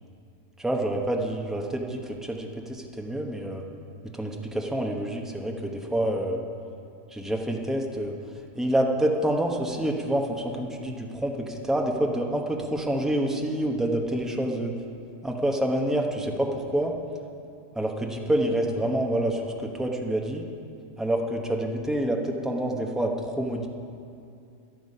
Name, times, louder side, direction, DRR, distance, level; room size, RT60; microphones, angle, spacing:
voice 1, 0.6-3.6 4.2-6.4 7.1-8.1 8.5-14.8 15.2-16.9 17.7-20.5 21.0-23.7, right 1 dB, ahead, 1 dB, 0.6 m, -27 dB
13.0 x 11.5 x 5.5 m, 2.5 s
omnidirectional pair, 1.8 m